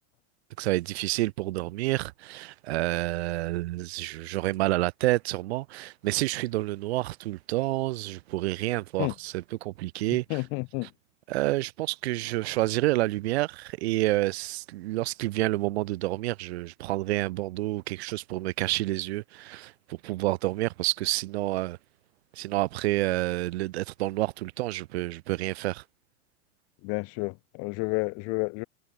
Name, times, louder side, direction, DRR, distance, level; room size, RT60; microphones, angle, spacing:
voice 1, 0.6-10.2 11.3-21.8 22.4-25.8, right 18 dB, 55° right, 4.3 m, -29 dB
voice 2, 10.3-10.9 26.8-28.6, left 31 dB, 40° left, 3.8 m, -30 dB
supercardioid pair, 165°, 37 cm